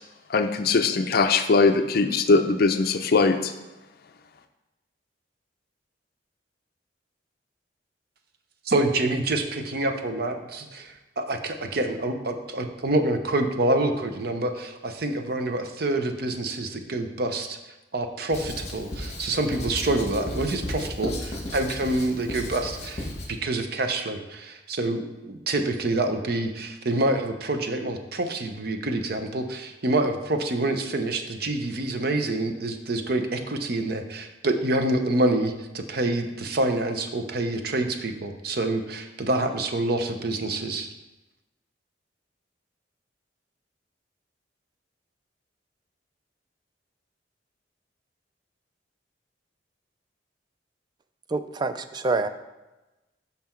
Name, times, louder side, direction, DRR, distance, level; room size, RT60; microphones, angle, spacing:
voice 1, 0.3-3.5, left 4 dB, 55° left, 8 dB, 0.4 m, -21 dB
voice 2, 8.7-17.6 17.9-40.9, right 2 dB, 55° right, 6 dB, 0.7 m, -27 dB
Writing, 18.3-23.3, left 1 dB, 35° left, 1.2 m, -34 dB
voice 3, 51.3-52.3, right 3 dB, 25° right, 10 dB, 0.3 m, -26 dB
5.7 x 5.6 x 4.4 m, 1.0 s
head